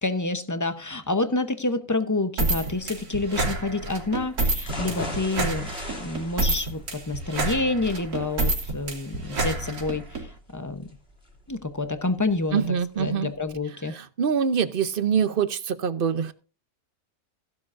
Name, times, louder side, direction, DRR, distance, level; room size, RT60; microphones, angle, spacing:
voice 1, 0.0-10.9 11.5-14.0, left 2 dB, 20° left, 10 dB, 0.5 m, -28 dB
sound 1, 2.4-10.2, right 2 dB, 80° right, 3.0 m, -28 dB
sound 2, 4.6-12.6 13.0-13.1 13.5-13.6, left 1 dB, 40° left, 2.9 m, -40 dB
voice 2, 12.5-13.3 13.9-16.3, right 7 dB, 50° right, 13 dB, 0.7 m, -24 dB
15.5 x 11.5 x 2.5 m, 0.32 s
omnidirectional pair, 1.6 m